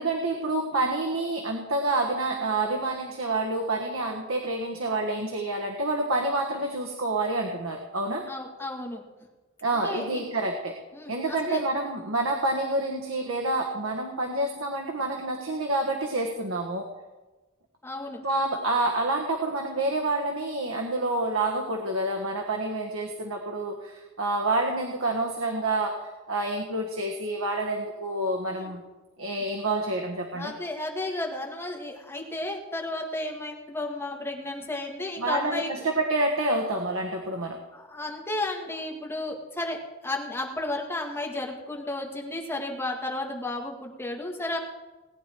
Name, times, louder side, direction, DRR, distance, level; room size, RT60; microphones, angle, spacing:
voice 1, 0.0-8.2 9.6-10.8 11.1-16.9 18.2-28.8 29.2-30.5 35.2-37.6, right 2 dB, 90° right, 2 dB, 1.5 m, -28 dB
voice 2, 8.3-9.0 9.8-10.2 10.9-11.6 17.8-18.2 28.5-28.7 30.3-35.9 37.7-44.6, left 2 dB, 10° left, 0 dB, 2.0 m, -33 dB
18.5 x 10.0 x 4.6 m, 1.2 s
head